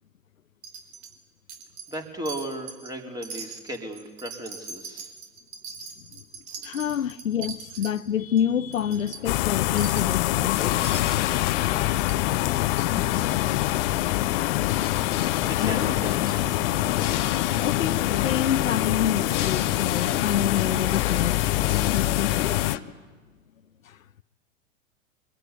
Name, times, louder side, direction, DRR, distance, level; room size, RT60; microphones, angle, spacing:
Wind chime, 0.6-1.2 1.5-2.0 2.3-2.9 3.2-7.9 8.4-8.5 8.7-9.2 9.8-10.2 10.8-11.3 12.0-12.2 12.8-12.9 13.2-13.3, right 5 dB, 50° right, 4.4 m, -40 dB
voice 1, 1.9-5.1 6.9-7.0 15.0-16.7, right 1 dB, 10° right, 4.0 m, -36 dB
voice 2, 6.6-10.8 15.6-15.9 17.6-21.4 21.9-22.6 23.8-24.0, left 9 dB, 85° left, 0.7 m, -28 dB
sound 1, 8.7-22.8, left 11 dB, 65° left, 1.8 m, -30 dB
sound 2, 9.3-22.8, left 18 dB, 45° left, 0.7 m, -25 dB
24.5 x 21.0 x 9.9 m
hypercardioid pair, 100°, 39 cm